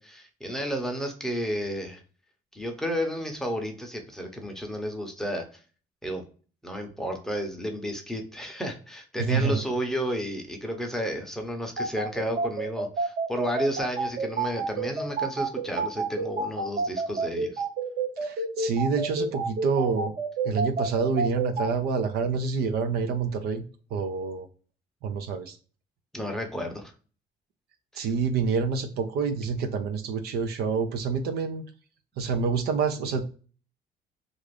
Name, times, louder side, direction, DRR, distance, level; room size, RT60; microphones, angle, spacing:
voice 1, 0.0-2.0 2.5-5.4 6.0-6.2 6.6-17.6 26.1-26.9 27.9-28.1, equal, 5° left, 3 dB, 0.7 m, -32 dB
voice 2, 9.2-9.6 18.2-20.1 20.4-23.6 23.9-24.5 25.0-25.6 27.9-31.6 32.2-33.2, right 5 dB, 70° right, 7 dB, 0.5 m, -27 dB
sound 1, 11.8-21.7, right 4 dB, 90° right, 1.2 m, -28 dB
2.5 x 2.4 x 3.2 m, 0.39 s
cardioid pair, 110°, 17 cm